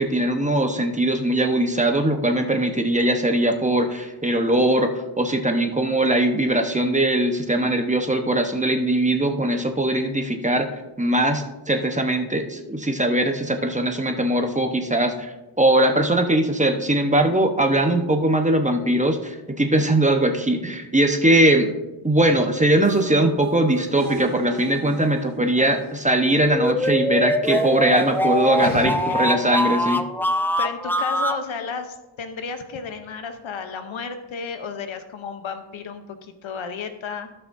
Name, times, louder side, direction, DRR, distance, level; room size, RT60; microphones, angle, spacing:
voice 1, 0.0-4.9 5.2-10.7 11.0-21.7 22.0-28.9 29.2-30.0, right 1 dB, 15° right, 4 dB, 1.0 m, -20 dB
sound 1, 22.2-29.5, right 2 dB, 60° right, 1.5 m, -40 dB
sound 2, 26.4-31.4, equal, 5° left, 0.4 m, -23 dB
voice 2, 28.6-29.2 30.6-37.3, left 5 dB, 90° left, 8 dB, 0.9 m, -33 dB
16.5 x 5.8 x 2.7 m, 1.0 s
cardioid pair, 75°, 46 cm